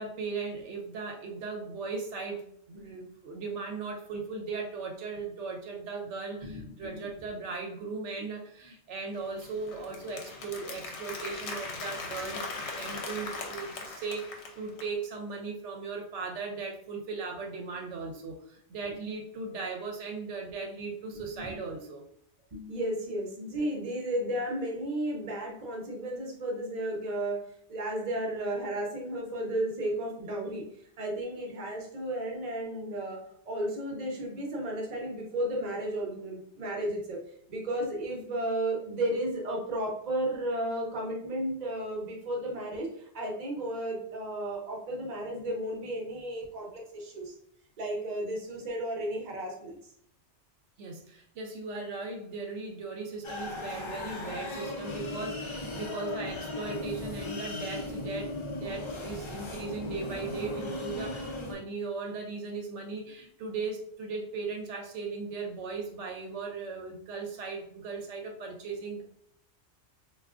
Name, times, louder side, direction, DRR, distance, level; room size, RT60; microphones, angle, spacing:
voice 1, 0.0-22.0 50.8-69.0, right 4 dB, 85° right, 2 dB, 0.9 m, -38 dB
voice 2, 6.4-7.1 18.9-19.0 21.1-21.6 22.5-27.4 27.7-30.6 31.0-33.2 33.5-37.2 37.5-47.3 47.8-49.8, right 1 dB, 40° right, -1 dB, 0.8 m, -33 dB
Applause, 9.1-14.9, left 3 dB, 75° left, 0.9 m, -40 dB
sound 1, 53.2-61.5, left 2 dB, 55° left, 0.3 m, -37 dB
3.4 x 2.4 x 2.4 m, 0.67 s
omnidirectional pair, 1.2 m